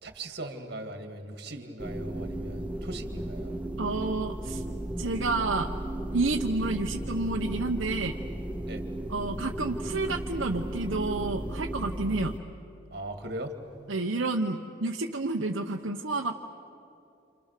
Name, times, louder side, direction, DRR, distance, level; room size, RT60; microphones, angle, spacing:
voice 1, 0.0-3.6 8.7-8.8 12.9-13.6, right 1 dB, 50° right, 6 dB, 2.3 m, -39 dB
sound 1, 1.8-12.4, right 1 dB, 5° right, 0.9 m, -35 dB
voice 2, 3.8-4.6 5.0-5.7 6.1-8.2 9.1-12.3 13.9-16.3, right 3 dB, 70° right, 1 dB, 1.0 m, -30 dB
29.5 x 28.5 x 6.7 m, 2.8 s
head